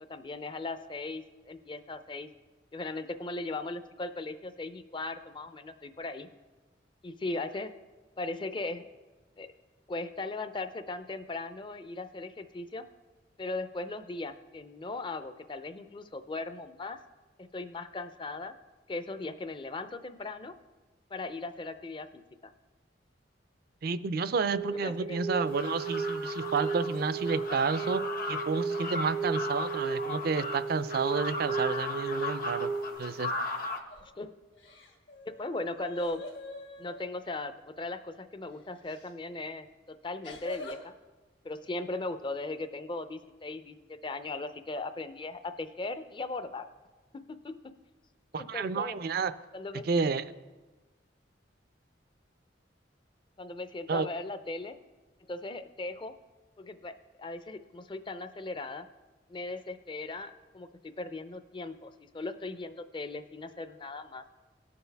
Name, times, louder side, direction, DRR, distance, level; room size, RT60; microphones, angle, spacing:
voice 1, 0.1-2.3 2.7-6.3 7.0-7.7 8.2-8.9 9.4-9.5 9.9-12.9 13.4-17.0 17.4-18.5 18.9-20.5 21.1-22.5 24.7-25.2 34.2-34.3 35.4-36.2 36.8-40.9 41.4-46.7 47.1-47.6 48.3-49.0 49.5-49.9 53.4-54.8 55.3-56.2 56.6-58.9 59.3-60.7 61.0-64.2, left 2 dB, 25° left, 11 dB, 0.5 m, -38 dB
voice 2, 23.8-28.0 28.3-32.7 33.0-33.3 48.3-49.3 49.8-50.2 53.9-54.1, right 5 dB, 55° right, 14 dB, 0.4 m, -30 dB
sound 1, 24.5-33.0, right 4 dB, 85° right, 1.2 m, -34 dB
sound 2, 25.5-33.8, left 3 dB, 50° left, 0.8 m, -37 dB
sound 3, 33.9-34.1 34.5-37.1 38.9-39.1 40.2-40.8, left 1 dB, 75° left, 1.4 m, -45 dB
17.5 x 6.9 x 3.4 m, 1.2 s
head